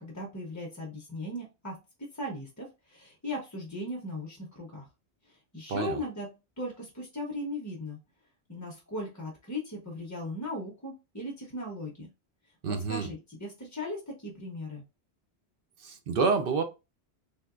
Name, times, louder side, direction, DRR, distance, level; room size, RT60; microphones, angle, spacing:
voice 1, 0.0-1.8 2.1-4.9 5.2-6.3 6.6-8.0 8.5-12.1 12.7-14.8, left 1 dB, 20° left, 0.5 m, -38 dB
voice 2, 5.7-6.0 12.6-13.1 15.8-16.6, right 4 dB, 60° right, 0.7 m, -28 dB
3.4 x 2.7 x 2.4 m
omnidirectional pair, 1.1 m